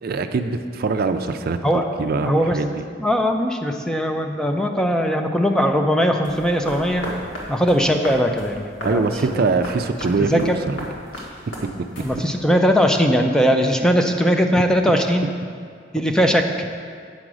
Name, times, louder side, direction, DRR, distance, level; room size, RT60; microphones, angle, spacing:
voice 1, 0.0-1.6 2.0-2.8 8.8-10.8 11.5-12.1, right 4 dB, 55° right, 8 dB, 0.4 m, -23 dB
voice 2, 1.6-2.6 3.0-7.1 7.5-9.0 9.3-9.5 10.2-10.5 12.0-15.3 15.9-16.7, equal, 5° left, 3 dB, 0.4 m, -20 dB
sound 1, 6.2-12.5, equal, 80° left, 1.6 m, -36 dB
8.5 x 5.1 x 6.1 m, 2.1 s
head